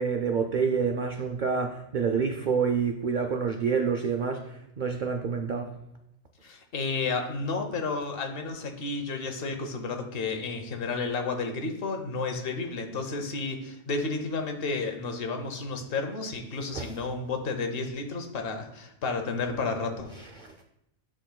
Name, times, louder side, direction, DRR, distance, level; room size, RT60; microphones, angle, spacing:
voice 1, 0.0-5.7 16.7-16.9 20.2-20.5, right 6 dB, 85° right, 5 dB, 0.4 m, -28 dB
voice 2, 6.4-20.1, left 4 dB, 50° left, 5 dB, 0.9 m, -32 dB
8.0 x 6.1 x 2.3 m, 0.85 s
omnidirectional pair, 1.4 m